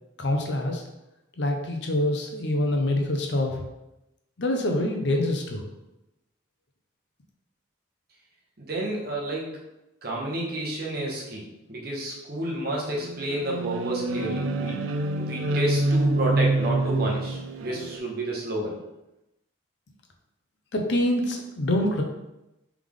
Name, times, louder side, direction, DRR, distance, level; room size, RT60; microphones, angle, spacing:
voice 1, 0.2-0.8 1.4-3.7 4.4-5.6 20.7-22.0, left 1 dB, 60° left, 2 dB, 0.6 m, -25 dB
voice 2, 8.6-9.6 10.0-14.7 15.1-18.8, right 1 dB, 50° right, -2 dB, 0.9 m, -30 dB
sound 1, 12.9-18.0, right 2 dB, 80° right, 0.3 m, -26 dB
3.5 x 3.3 x 3.6 m, 0.92 s
head